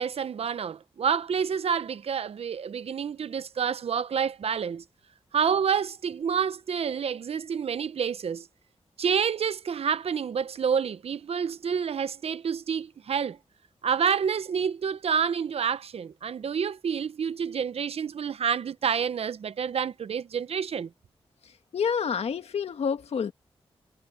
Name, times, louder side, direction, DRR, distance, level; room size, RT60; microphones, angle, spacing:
voice 1, 0.0-4.8 5.3-8.5 9.0-13.4 13.8-20.9, right 7 dB, 75° right, 0.8 m, -28 dB
voice 2, 21.4-23.3, left 6 dB, 80° left, 1.9 m, -29 dB
cardioid pair, 55°, 10 cm